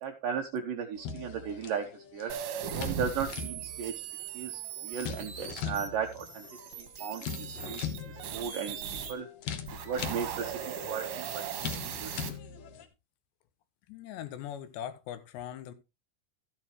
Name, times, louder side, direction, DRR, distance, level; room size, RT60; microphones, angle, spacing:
voice 1, 0.0-1.9 2.1-2.3 2.7-3.9 4.3-6.5 6.8-7.8 8.3-8.8 9.1-9.3 9.9-10.5 10.8-11.3 11.6-11.7 12.0-12.1, right 7 dB, 75° right, 2.2 m, -35 dB
sound 1, 0.9-12.8, left 7 dB, 70° left, 1.8 m, -41 dB
sound 2, 2.3-9.1 9.6-12.3, right 8 dB, 90° right, 4.1 m, -39 dB
sound 3, 5.3-5.7 7.5-7.8, left 3 dB, 50° left, 2.2 m, -45 dB
voice 2, 13.9-15.7, left 10 dB, 85° left, 3.3 m, -40 dB
14.0 x 8.8 x 3.1 m
omnidirectional pair, 5.0 m